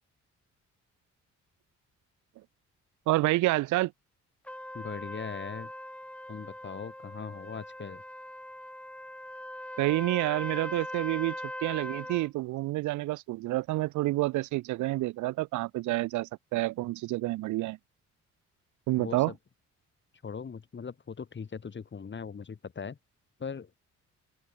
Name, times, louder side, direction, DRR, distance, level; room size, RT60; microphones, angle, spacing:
voice 1, 3.1-3.9 9.8-11.4 11.6-17.8 18.9-19.3, right 18 dB, 75° right, 0.5 m, -28 dB
Trumpet, 4.5-12.3, left 1 dB, 5° left, 0.9 m, -40 dB
voice 2, 4.7-5.7 6.3-8.0 19.0-19.4 20.2-23.0 23.4-23.7, left 6 dB, 40° left, 4.0 m, -40 dB
open air
cardioid pair, 90°, 30 cm